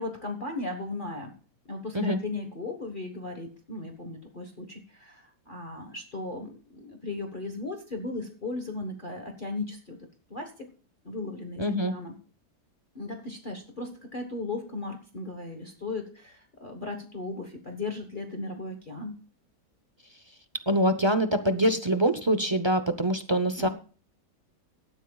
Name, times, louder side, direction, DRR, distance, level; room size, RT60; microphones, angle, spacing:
voice 1, 0.0-1.3 1.7-10.0 10.3-10.7 11.0-12.1 12.9-19.2 23.6-23.7, left 2 dB, 30° left, 4 dB, 1.4 m, -36 dB
voice 2, 11.6-11.9 20.7-23.7, equal, 30° right, 9 dB, 0.4 m, -24 dB
17.0 x 12.0 x 2.3 m, 0.39 s
omnidirectional pair, 1.8 m